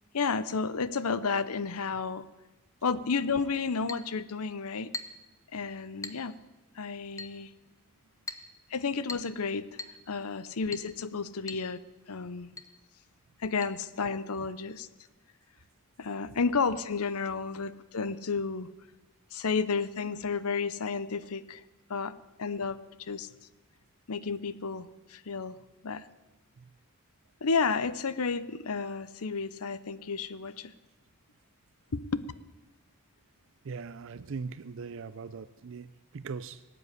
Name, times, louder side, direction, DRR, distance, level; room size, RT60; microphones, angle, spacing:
voice 1, 0.1-2.2 2.8-4.9 5.5-6.4 6.8-7.5 8.7-9.8 10.1-11.8 12.1-12.5 13.4-14.9 16.0-18.7 19.3-21.6 21.9-23.3 24.1-25.6 25.8-26.1 27.4-30.7 31.9-32.2, left 5 dB, 80° left, 16 dB, 0.7 m, -32 dB
Chink clink, 3.9-4.1 4.9-5.3 6.0-6.3 7.2-7.4 8.3-8.5 9.1-9.4 9.8-10.0 10.7-10.9 11.5-11.7 11.9-12.0 12.6-12.7 13.6-13.7, left 3 dB, 15° left, 0.8 m, -40 dB
voice 2, 33.6-36.6, right 5 dB, 60° right, 14 dB, 0.5 m, -40 dB
19.0 x 7.9 x 9.6 m, 1.1 s
head